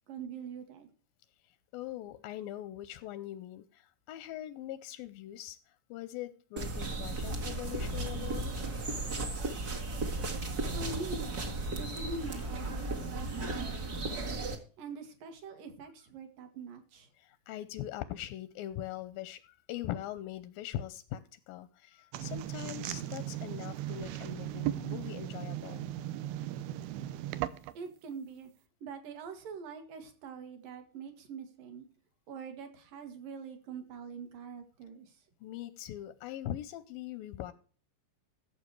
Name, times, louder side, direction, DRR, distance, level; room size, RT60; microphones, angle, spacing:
voice 1, 0.1-0.9 10.7-14.4 14.8-17.1 27.7-28.5 28.8-31.8 32.3-35.2, right 5 dB, 65° right, 7 dB, 3.3 m, -44 dB
voice 2, 1.7-8.5 17.2-25.8 35.4-37.5, left 13 dB, 80° left, 13 dB, 2.1 m, -42 dB
sound 1, 6.6-14.6, right 2 dB, 45° right, 1.3 m, -35 dB
sound 2, 22.1-27.9, right 13 dB, 80° right, 2.6 m, -37 dB
14.5 x 7.2 x 4.7 m, 0.41 s
omnidirectional pair, 4.6 m